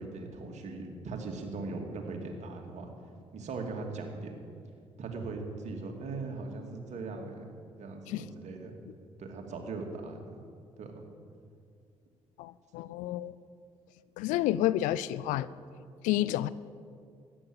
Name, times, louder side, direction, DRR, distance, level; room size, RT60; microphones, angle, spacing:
voice 1, 0.0-2.9 3.3-4.4 5.0-7.5 7.8-8.7 9.2-10.4 10.8-10.9, right 3 dB, 65° right, 2 dB, 2.7 m, -39 dB
voice 2, 12.4-13.3 14.2-15.5 16.0-16.5, left 14 dB, 80° left, 17 dB, 0.5 m, -30 dB
14.0 x 10.5 x 8.9 m, 2.3 s
hypercardioid pair, 50°, 13 cm